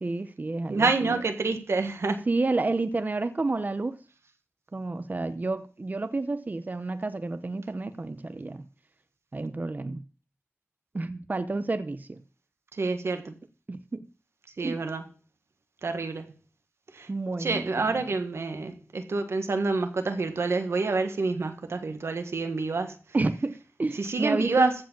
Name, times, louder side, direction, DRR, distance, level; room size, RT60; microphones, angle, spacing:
voice 1, 0.0-1.2 2.3-4.0 4.7-8.6 9.3-10.0 10.9-12.2 13.7-14.0 14.6-14.8 17.1-18.0 23.1-24.7, right 3 dB, 40° right, 0.7 m, -30 dB
voice 2, 0.7-2.3 12.8-13.3 14.6-15.0 15.8-16.3 16.9-17.1 17.4-22.9 23.9-24.7, right 3 dB, 85° right, 1.5 m, -27 dB
15.0 x 5.0 x 7.3 m
wide cardioid pair, 75°, 4 cm